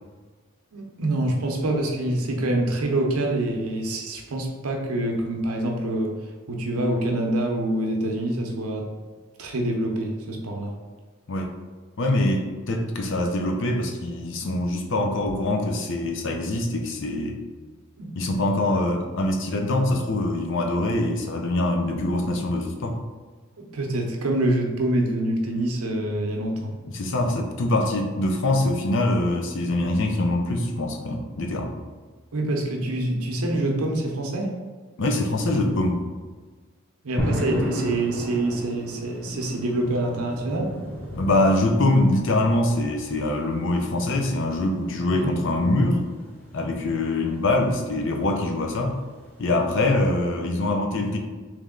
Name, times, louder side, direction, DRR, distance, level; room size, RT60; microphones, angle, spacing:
voice 1, 0.7-6.1 6.5-8.9 9.4-10.7 18.0-18.1 23.6-26.7 32.3-34.6 37.0-40.7 45.1-45.3, right 1 dB, 85° right, 1 dB, 0.7 m, -26 dB
voice 2, 12.0-17.4 18.1-23.0 26.9-31.7 35.0-36.0 41.1-46.0 46.5-49.0 49.4-51.2, left 1 dB, 55° left, 2 dB, 0.5 m, -24 dB
sound 1, 37.2-50.1, equal, 5° left, 0.6 m, -36 dB
3.4 x 3.1 x 3.7 m, 1.4 s
head